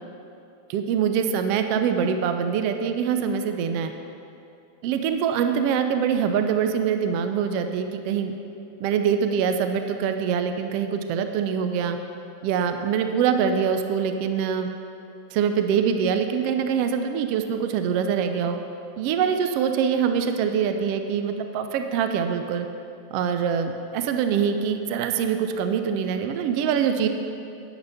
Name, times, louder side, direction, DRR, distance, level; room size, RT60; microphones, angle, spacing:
voice 1, 0.7-3.9 4.8-8.3 8.8-12.0 12.4-14.7 15.3-18.6 19.0-22.7 23.1-27.1, right 7 dB, 85° right, 7 dB, 1.4 m, -24 dB
11.5 x 8.9 x 5.7 m, 2.7 s
omnidirectional pair, 3.5 m